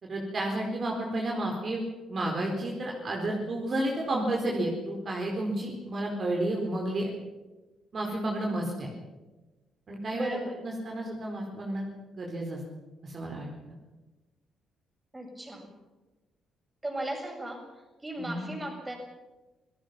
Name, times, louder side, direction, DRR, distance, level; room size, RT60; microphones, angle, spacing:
voice 1, 0.0-1.8 2.1-7.1 7.9-8.9 9.9-11.8 12.1-12.6 13.0-13.8 18.2-18.5, right 1 dB, 45° right, 0 dB, 4.5 m, -31 dB
voice 2, 10.1-10.6 15.1-15.7 16.8-17.7 18.0-19.0, right 1 dB, 15° right, 2 dB, 7.2 m, -36 dB
28.0 x 18.0 x 6.1 m, 1.1 s
cardioid pair, 90°, 0 cm